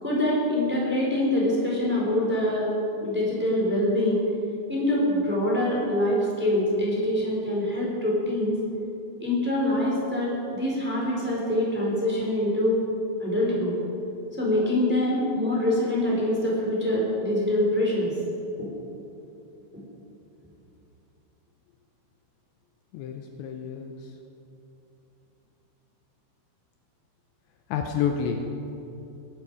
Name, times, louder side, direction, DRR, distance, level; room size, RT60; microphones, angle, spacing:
voice 1, 0.0-2.7 3.0-4.2 4.7-8.6 9.2-12.8 13.2-13.7 14.4-18.1 18.6-18.7, left 1 dB, ahead, -5 dB, 3.7 m, -24 dB
voice 2, 22.9-24.0 27.7-28.7, left 7 dB, 80° left, 3 dB, 2.9 m, -29 dB
22.0 x 12.0 x 4.9 m, 2.9 s
omnidirectional pair, 5.5 m